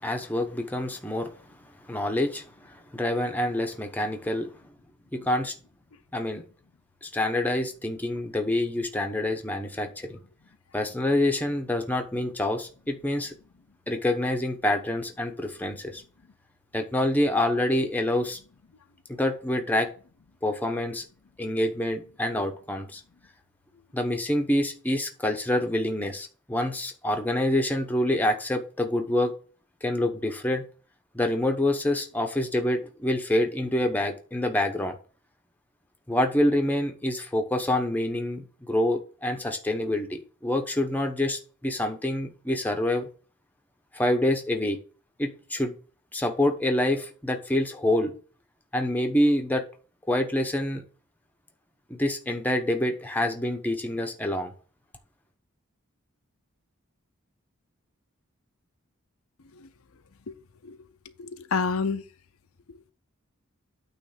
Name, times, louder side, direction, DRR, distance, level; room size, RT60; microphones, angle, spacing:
voice 1, 0.0-1.3 1.9-2.4 2.9-4.5 5.1-5.5 6.1-6.4 7.0-10.2 10.7-13.3 13.9-16.0 16.7-18.4 19.1-19.9 20.4-21.0 21.4-23.0 23.9-29.3 29.8-30.6 31.1-35.0 36.1-43.1 43.9-44.8 45.2-45.7 46.1-48.1 48.7-49.6 50.1-50.8 51.9-54.5, left 1 dB, 10° left, 0.9 m, -26 dB
voice 2, 61.0-62.0 62.7-62.8, left 5 dB, 80° left, 0.6 m, -29 dB
9.0 x 3.2 x 6.6 m
head